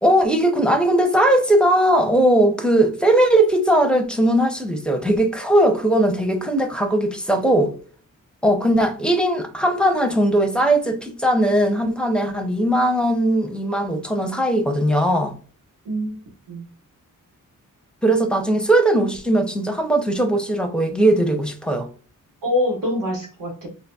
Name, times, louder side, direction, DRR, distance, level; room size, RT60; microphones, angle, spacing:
voice 1, 0.0-7.7 8.4-15.3 18.0-21.9, right 1 dB, 5° left, 0.5 m, -19 dB
voice 2, 15.8-16.2 16.5-16.6 22.4-23.7, left 1 dB, 80° right, 1.6 m, -24 dB
3.9 x 2.9 x 2.3 m
wide cardioid pair, 140°, 32 cm